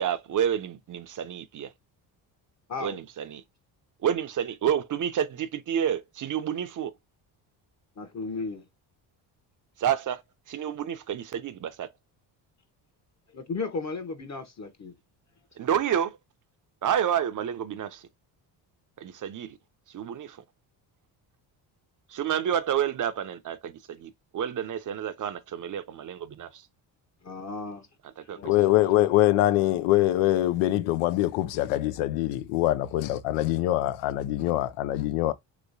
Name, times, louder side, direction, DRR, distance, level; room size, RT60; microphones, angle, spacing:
voice 1, 0.0-1.7 2.8-3.4 4.0-6.9 9.8-10.2 10.5-11.9 15.6-16.2 16.8-18.1 19.0-19.6 19.9-20.4 22.1-26.7 28.2-28.4, right 9 dB, 40° right, 0.6 m, -29 dB
voice 2, 8.0-8.6 13.3-14.9 27.2-27.9 28.2-28.5, left 4 dB, 35° left, 0.9 m, -35 dB
voice 3, 28.4-35.3, left 15 dB, 85° left, 0.6 m, -24 dB
3.1 x 3.0 x 2.5 m
supercardioid pair, 70°, 47 cm